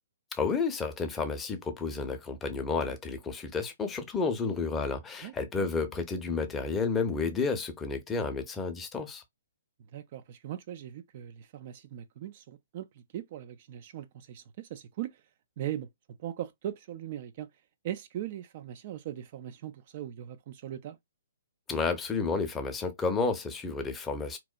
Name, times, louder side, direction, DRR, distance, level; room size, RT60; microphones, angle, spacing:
voice 1, 0.3-9.2 21.7-24.4, left 4 dB, 15° left, 0.6 m, -31 dB
voice 2, 5.2-5.7 9.9-15.2 15.6-15.9 16.2-17.5 17.8-21.0, right 11 dB, 45° right, 0.3 m, -39 dB
2.8 x 2.1 x 2.2 m
figure-of-eight pair, 125°, 0 cm